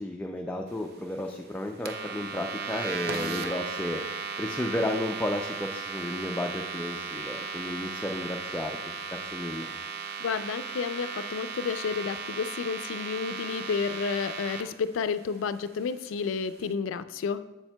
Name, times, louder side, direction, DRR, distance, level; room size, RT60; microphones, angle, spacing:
voice 1, 0.0-4.0 4.4-8.8 9.1-9.7, left 1 dB, 10° left, 1 dB, 0.3 m, -33 dB
sound 1, 1.8-14.6, right 5 dB, 55° right, 0.5 m, -36 dB
voice 2, 10.2-17.4, left 5 dB, 85° left, 12 dB, 0.3 m, -31 dB
8.1 x 7.2 x 2.2 m, 1.1 s
head